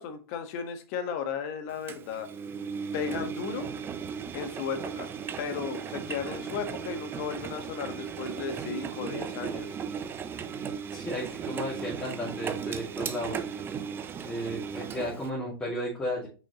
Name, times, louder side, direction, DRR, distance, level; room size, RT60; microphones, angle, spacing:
voice 1, 0.0-2.3 2.9-3.7 4.3-5.1 5.4-9.8, left 6 dB, 40° left, 7 dB, 1.4 m, -35 dB
Engine, 1.9-15.3, right 7 dB, 15° right, 0.5 m, -36 dB
voice 2, 10.9-13.4 14.2-16.3, equal, 10° left, -6 dB, 2.6 m, -34 dB
5.9 x 5.6 x 3.0 m, 0.35 s
hypercardioid pair, 120°, 13 cm